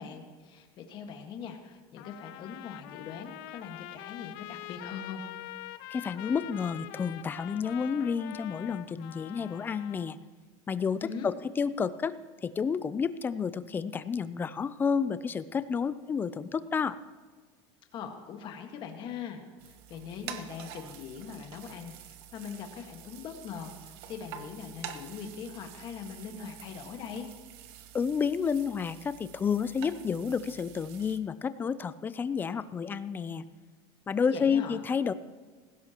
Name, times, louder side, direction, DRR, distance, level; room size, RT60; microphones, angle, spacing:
voice 1, 0.0-5.2 11.0-11.3 17.9-19.4 19.7-27.3 34.3-34.8, left 6 dB, 40° left, 4 dB, 1.6 m, -41 dB
Trumpet, 2.0-10.1, left 15 dB, 70° left, 0.6 m, -44 dB
voice 2, 5.9-10.2 10.7-12.2 12.4-17.0 27.9-33.4 34.1-35.1, left 6 dB, 15° left, 15 dB, 0.4 m, -30 dB
sound 1, 19.6-31.2, right 10 dB, 75° right, 1.1 m, -47 dB
18.5 x 16.0 x 3.0 m, 1.5 s
cardioid pair, 160°, 13 cm